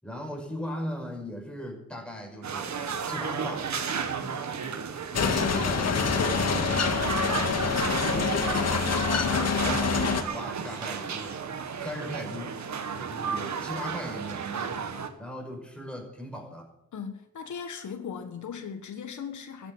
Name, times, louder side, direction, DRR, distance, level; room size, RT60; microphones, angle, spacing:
voice 1, 0.0-2.7 3.0-3.7 5.1-6.6 7.8-8.4 8.9-11.4 11.8-12.6 12.9-14.8 15.2-16.7, equal, 5° left, 5.9 m, -38 dB
sound 1, 2.4-15.1, right 6 dB, 70° right, 1.8 m, -33 dB
sound 2, 5.1-10.2, left 5 dB, 60° left, 1.9 m, -26 dB
voice 2, 16.9-19.7, left 7 dB, 85° left, 1.7 m, -38 dB
14.0 x 9.8 x 9.2 m
wide cardioid pair, 100°, 29 cm